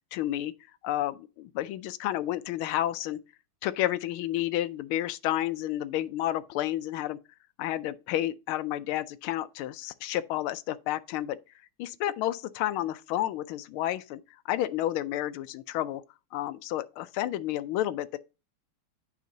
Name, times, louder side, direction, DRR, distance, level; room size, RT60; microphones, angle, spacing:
voice 1, 0.1-0.5 0.8-3.2 3.6-7.2 7.6-11.4 11.8-14.2 14.5-16.0 16.3-18.2, left 13 dB, 90° left, 1.4 m, -31 dB
9.2 x 5.9 x 2.7 m
omnidirectional pair, 2.3 m